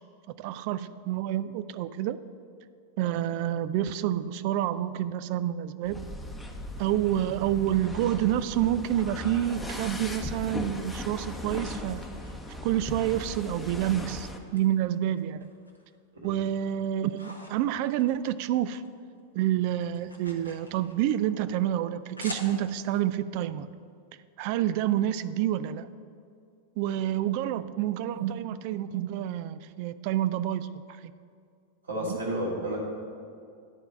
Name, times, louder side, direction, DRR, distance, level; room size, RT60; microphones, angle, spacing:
voice 1, 0.4-2.2 3.0-6.1 6.8-12.0 12.5-15.5 16.2-18.8 19.3-23.7 24.4-25.9 26.8-31.1 32.1-32.2, right 12 dB, 45° right, 14 dB, 0.3 m, -28 dB
sound 1, 5.8-14.4, left 1 dB, 5° left, 0.8 m, -38 dB
sound 2, 11.2-13.0 13.5-14.6 14.9-16.0 16.3-18.9 19.2-23.0, left 1 dB, 90° left, 1.1 m, -48 dB
voice 2, 31.9-32.8, right 1 dB, 75° right, -3 dB, 2.3 m, -31 dB
9.9 x 4.5 x 7.8 m, 2.3 s
figure-of-eight pair, 90°, 0 cm